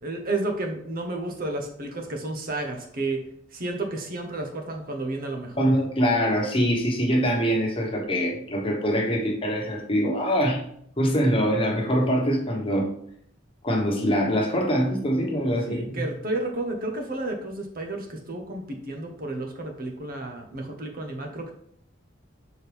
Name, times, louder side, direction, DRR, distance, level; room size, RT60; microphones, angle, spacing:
voice 1, 0.0-3.2 3.5-5.7 15.5-21.5, right 2 dB, 50° right, 3 dB, 1.1 m, -31 dB
voice 2, 5.6-10.6 11.0-12.9 13.6-16.1, equal, 30° left, 0 dB, 1.3 m, -24 dB
6.3 x 4.4 x 3.4 m, 0.67 s
head